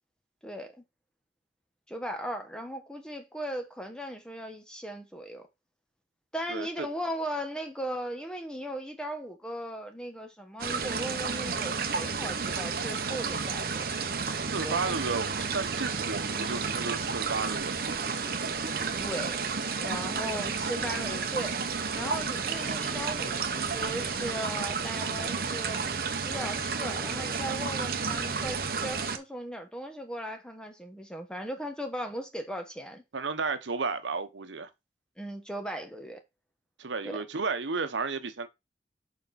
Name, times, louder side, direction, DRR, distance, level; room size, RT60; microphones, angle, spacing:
voice 1, 0.4-0.8 1.9-5.5 6.3-13.9 14.6-14.9 19.0-19.4 19.8-21.6 21.9-25.8 26.2-33.0 35.2-36.2 37.0-37.2, equal, 5° left, 1.2 m, -37 dB
voice 2, 6.5-6.9 14.5-17.9 33.1-34.7 36.8-38.5, right 4 dB, 90° right, 0.9 m, -33 dB
sound 1, 10.6-29.2, right 5 dB, 55° right, 0.9 m, -31 dB
6.8 x 5.1 x 4.2 m
head